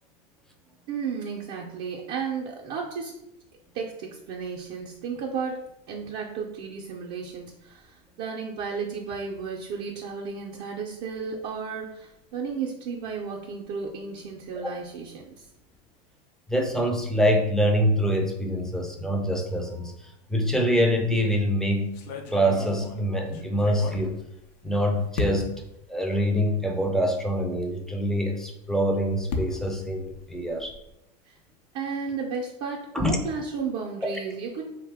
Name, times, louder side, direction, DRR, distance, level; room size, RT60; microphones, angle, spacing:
voice 1, 0.9-3.2 3.7-15.5 31.3-31.4 31.7-34.8, right 5 dB, 55° right, -1 dB, 0.4 m, -33 dB
voice 2, 16.5-21.9 22.3-24.1 24.6-25.5 25.9-30.8 32.9-33.1, equal, ahead, 2 dB, 0.4 m, -25 dB
sound 1, 21.1-21.4 21.9-24.7 25.1-25.7 26.4-26.5 26.9-27.0 28.6-30.9, left 4 dB, 80° left, 0.5 m, -35 dB
2.7 x 2.1 x 3.4 m, 0.83 s
supercardioid pair, 110°, 21 cm